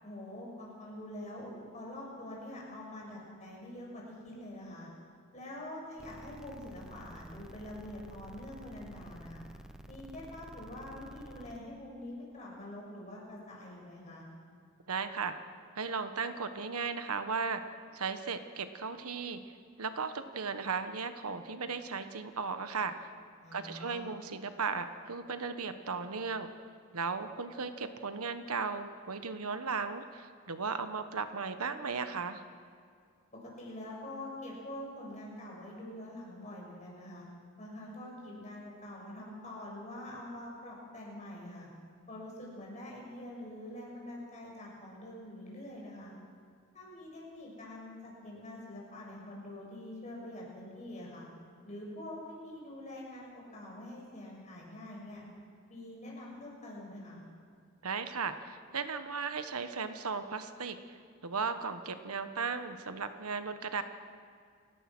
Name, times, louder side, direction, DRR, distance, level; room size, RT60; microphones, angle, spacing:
voice 1, 0.0-4.9 5.3-9.4 9.9-14.2 23.4-24.1 33.4-37.2 37.6-41.7 42.1-46.1 46.7-51.2 51.6-55.2 55.7-57.2, left 1 dB, 30° left, -3 dB, 6.8 m, -45 dB
sound 1, 6.0-11.6, right 1 dB, 5° right, 0.9 m, -51 dB
voice 2, 14.9-15.3 15.7-17.6 17.9-19.4 19.8-22.9 23.5-26.5 26.9-32.4 57.8-60.8 61.2-63.8, right 5 dB, 90° right, 9 dB, 1.3 m, -36 dB
29.5 x 17.0 x 6.2 m, 2.2 s
head